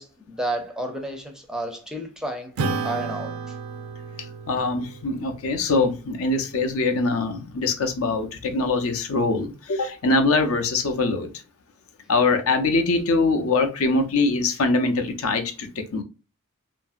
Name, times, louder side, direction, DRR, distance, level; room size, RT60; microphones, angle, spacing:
voice 1, 0.0-3.4, right 1 dB, 5° right, 0.5 m, -31 dB
Acoustic guitar / Strum, 2.6-7.4, right 4 dB, 75° right, 0.4 m, -34 dB
voice 2, 4.5-11.3 12.1-16.0, left 3 dB, 70° left, 0.5 m, -23 dB
2.7 x 2.6 x 2.4 m
head